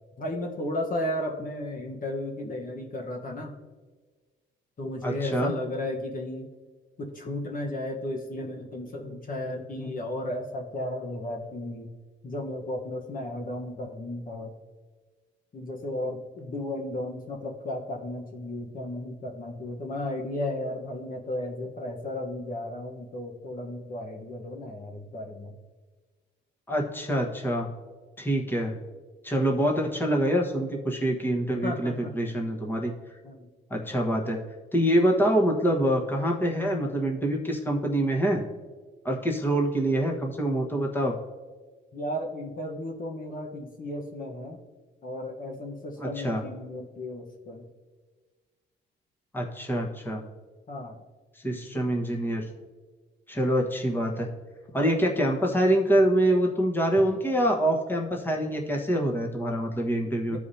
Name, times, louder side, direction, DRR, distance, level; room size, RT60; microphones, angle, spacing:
voice 1, 0.2-3.5 4.8-6.5 7.0-11.9 12.2-14.5 15.5-25.5 31.6-32.1 33.2-33.4 41.9-44.6 45.0-47.7 50.7-51.0 60.3-60.4, left 1 dB, 45° left, 1 dB, 1.2 m, -34 dB
voice 2, 5.0-5.5 26.7-27.7 28.2-28.8 29.2-32.9 33.7-34.4 34.7-38.4 39.0-41.1 46.0-46.4 49.3-50.2 51.4-52.4 53.3-54.3 54.7-60.4, right 1 dB, 10° left, 0 dB, 1.3 m, -25 dB
14.0 x 4.8 x 2.8 m, 1.4 s
cardioid pair, 90°, 20 cm